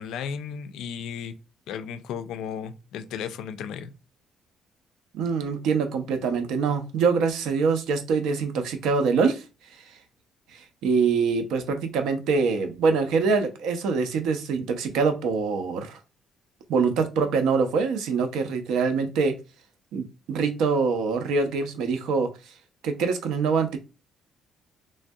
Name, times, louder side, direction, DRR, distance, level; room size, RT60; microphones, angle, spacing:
voice 1, 0.0-1.4 1.7-3.9, left 7 dB, 75° left, 0.3 m, -34 dB
voice 2, 5.1-9.4 9.9-10.0 10.5-16.0 16.7-19.3 19.9-22.3 22.8-23.8, right 5 dB, 85° right, 0.5 m, -24 dB
3.1 x 2.6 x 2.2 m
cardioid pair, 170°, 0 cm